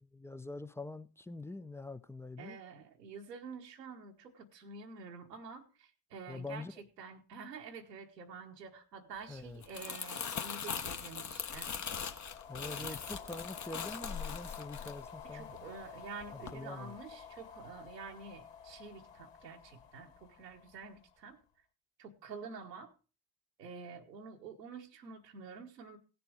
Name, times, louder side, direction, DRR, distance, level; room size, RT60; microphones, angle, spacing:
voice 1, 0.0-2.6 6.3-6.7 9.3-9.6 12.5-15.5 16.3-17.0, left 2 dB, 5° left, 0.6 m, -45 dB
voice 2, 2.4-11.7 12.7-13.0 15.2-21.4 22.0-22.9 23.6-26.0, right 5 dB, 85° right, 1.4 m, -48 dB
Crumpling crinkling, 9.5-15.9 16.2-16.5, left 7 dB, 35° left, 1.3 m, -41 dB
sound 1, 11.8-21.3, left 7 dB, 65° left, 2.7 m, -51 dB
16.5 x 6.9 x 4.8 m
hypercardioid pair, 55°, 48 cm